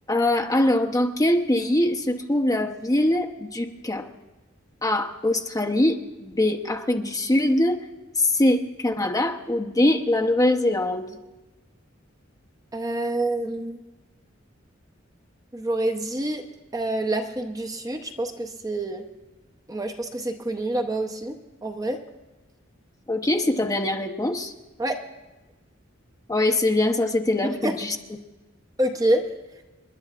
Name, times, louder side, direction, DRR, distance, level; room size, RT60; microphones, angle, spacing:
voice 1, 0.1-4.1 4.8-7.8 8.1-11.2 23.1-24.5 26.3-28.0, left 1 dB, 20° left, 2 dB, 0.8 m, -23 dB
voice 2, 12.7-13.8 15.5-16.4 16.7-19.0 19.7-22.0 24.8-25.0 27.4-27.8 28.8-29.3, right 1 dB, 20° right, 4 dB, 0.8 m, -27 dB
29.5 x 11.0 x 2.5 m, 1.1 s
head